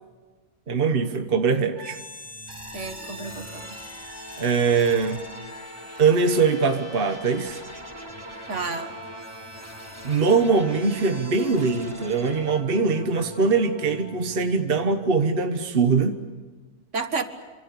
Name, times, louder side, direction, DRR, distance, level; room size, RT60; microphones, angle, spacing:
voice 1, 0.7-2.0 4.4-5.2 6.0-7.6 10.0-16.1, right 4 dB, 45° right, 7 dB, 1.4 m, -22 dB
sound 1, 1.7-15.6, equal, 20° right, 4.1 m, -41 dB
voice 2, 2.7-3.8 8.5-8.9 16.9-17.2, right 4 dB, 65° right, 8 dB, 2.1 m, -30 dB
27.5 x 27.0 x 6.9 m, 1.4 s
omnidirectional pair, 1.4 m